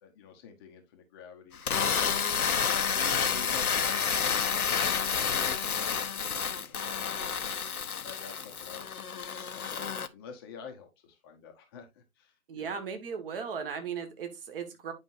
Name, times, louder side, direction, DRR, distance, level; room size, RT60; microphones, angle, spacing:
voice 1, 0.0-1.8 2.3-7.4 8.0-12.8, left 6 dB, 15° left, 0.9 m, -49 dB
sound 1, 1.5-10.1, left 7 dB, 75° left, 0.9 m, -29 dB
voice 2, 12.5-14.9, right 6 dB, 40° right, 1.9 m, -37 dB
9.7 x 5.3 x 2.6 m
figure-of-eight pair, 140°, 44 cm